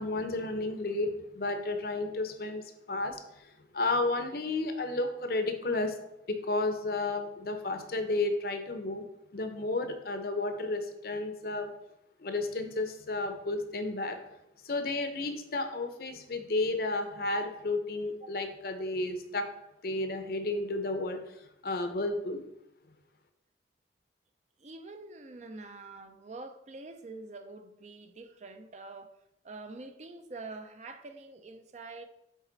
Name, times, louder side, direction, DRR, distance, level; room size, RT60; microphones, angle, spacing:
voice 1, 0.0-2.6 2.9-3.2 3.7-5.9 6.3-9.0 9.3-11.7 12.2-14.2 14.6-19.5 19.8-21.2 21.6-22.4, left 2 dB, 55° left, 7 dB, 0.7 m, -32 dB
voice 2, 24.6-29.1 29.4-32.0, right 3 dB, 40° right, 7 dB, 0.5 m, -45 dB
7.4 x 4.0 x 3.9 m, 0.85 s
head